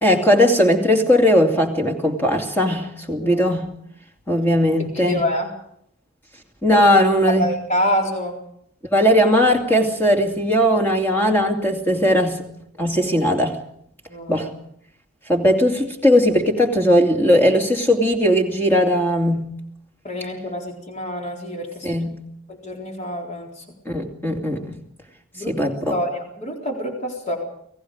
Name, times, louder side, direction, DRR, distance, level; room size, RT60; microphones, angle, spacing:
voice 1, 0.0-3.7 4.3-5.3 6.6-7.5 8.9-12.4 12.8-13.6 14.3-14.5 15.3-19.5 21.8-22.2 23.9-24.8 25.5-26.0, equal, 10° left, 3 dB, 2.6 m, -18 dB
voice 2, 4.9-5.5 6.7-6.8 7.3-8.4 14.1-14.5 20.0-21.9 22.5-23.6 25.3-25.6 25.9-27.4, equal, 30° left, 0 dB, 4.0 m, -26 dB
29.5 x 18.5 x 5.0 m, 0.71 s
head